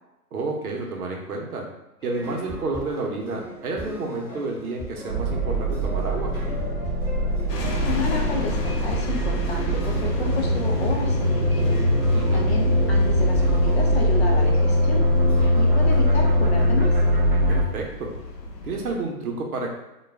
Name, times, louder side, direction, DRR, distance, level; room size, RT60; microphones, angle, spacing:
voice 1, 0.3-1.6 2.0-6.3 12.1-12.5 17.5-18.1 18.6-19.7, right 3 dB, 65° right, 0 dB, 0.8 m, -30 dB
sound 1, 2.0-17.2, equal, 10° left, 0.9 m, -39 dB
sound 2, 5.1-17.6, equal, 40° right, 0.6 m, -21 dB
sound 3, 7.5-19.0, left 1 dB, 90° left, 0.6 m, -34 dB
voice 2, 7.8-11.8 12.3-15.0 15.6-16.9, left 4 dB, 45° left, 1 dB, 0.5 m, -31 dB
2.3 x 2.2 x 3.2 m, 0.95 s
figure-of-eight pair, 125°, 47 cm